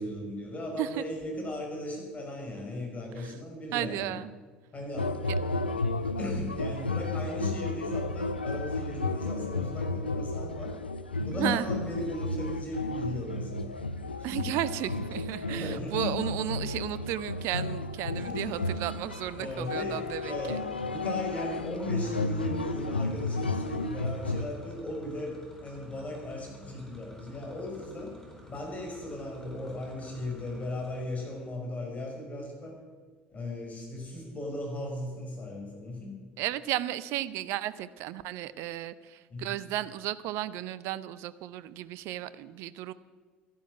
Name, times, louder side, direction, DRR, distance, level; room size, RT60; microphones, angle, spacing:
voice 1, 0.0-4.1 4.7-5.5 6.2-10.7 11.2-13.7 14.2-14.8 15.4-16.4 18.2-18.6 19.4-28.1 28.5-32.8 33.3-36.1 39.3-39.6, left 1 dB, 25° left, 0 dB, 5.7 m, -37 dB
voice 2, 3.7-4.3 11.4-11.7 14.2-20.6 36.4-42.9, right 13 dB, 55° right, 17 dB, 0.6 m, -34 dB
sound 1, 5.0-24.5, left 3 dB, 90° left, 0.5 m, -33 dB
sound 2, 18.1-31.5, left 1 dB, 10° left, 4.3 m, -52 dB
13.0 x 11.5 x 7.7 m, 1.4 s
figure-of-eight pair, 60°, 5 cm